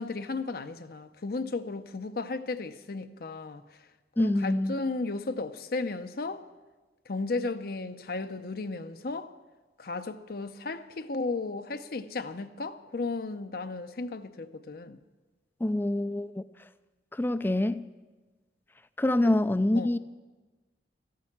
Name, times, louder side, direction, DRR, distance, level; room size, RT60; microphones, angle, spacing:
voice 1, 0.0-3.6 4.2-6.4 7.1-9.3 9.8-15.0 19.2-19.3 19.7-19.9, left 3 dB, 60° left, 0.6 m, -34 dB
voice 2, 4.2-4.8 15.6-16.4 17.1-17.8 19.0-20.0, left 1 dB, 10° left, 0.4 m, -26 dB
14.0 x 11.0 x 7.3 m
head